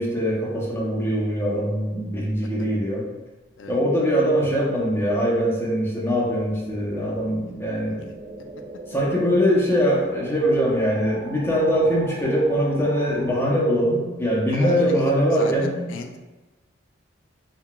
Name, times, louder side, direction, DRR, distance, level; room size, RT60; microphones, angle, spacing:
voice 1, 0.0-3.0 3.7-8.1 8.9-15.7, equal, 15° left, -4 dB, 0.6 m, -22 dB
sound 1, 6.1-13.3, right 2 dB, 30° right, 0.3 m, -42 dB
voice 2, 14.5-15.0 15.3-16.2, left 4 dB, 80° left, 5 dB, 0.4 m, -35 dB
3.8 x 2.2 x 2.2 m, 1.1 s
head